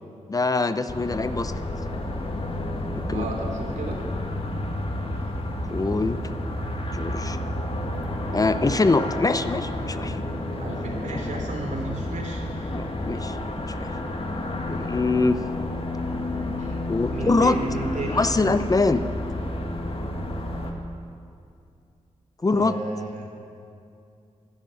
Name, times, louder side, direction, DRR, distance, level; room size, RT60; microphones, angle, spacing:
voice 1, 0.3-1.5 3.1-3.3 5.7-6.2 6.9-7.4 8.3-10.2 12.7-13.4 13.8-13.9 14.7-15.4 16.9-17.6 18.1-19.0 22.4-22.8, left 3 dB, 30° left, 12 dB, 0.7 m, -23 dB
sound 1, 0.9-20.7, left 1 dB, 50° left, 1.9 m, -30 dB
voice 2, 3.1-4.0 10.5-12.8 16.6-16.8 17.1-18.3 22.4-23.2, right 2 dB, 85° right, 1 dB, 3.0 m, -33 dB
12.5 x 11.5 x 9.7 m, 2.5 s
wide cardioid pair, 80°, 12 cm